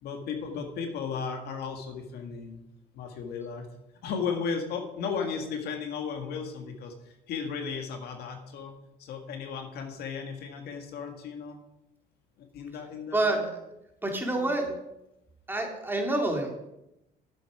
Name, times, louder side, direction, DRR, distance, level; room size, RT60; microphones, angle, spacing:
voice 1, 0.0-2.6 2.9-3.7 4.0-11.6 12.4-13.3 14.4-14.7, left 6 dB, 70° left, 4 dB, 1.8 m, -35 dB
voice 2, 13.1-13.5 14.0-14.7 15.5-16.5, right 2 dB, 10° right, 2 dB, 2.4 m, -27 dB
11.0 x 8.0 x 4.9 m, 0.88 s
cardioid pair, 110°, 17 cm